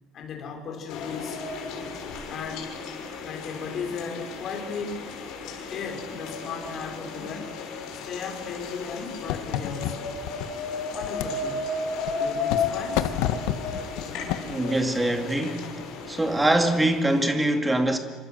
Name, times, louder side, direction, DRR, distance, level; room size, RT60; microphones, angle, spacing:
voice 1, 0.1-1.4 2.3-2.7 3.2-5.1 5.7-7.5 7.9-10.1 10.9-11.6 12.2-13.1, left 5 dB, 35° left, 4.9 m, -36 dB
Scary Rain, 0.9-17.3, left 4 dB, 55° left, 6.5 m, -34 dB
sound 1, 8.6-10.5 11.0-11.4 12.0-12.7 13.0-14.6, left 12 dB, 75° left, 1.7 m, -29 dB
voice 2, 14.5-18.0, right 1 dB, 5° right, 2.2 m, -23 dB
27.5 x 25.5 x 7.7 m
cardioid pair, 180°, 0 cm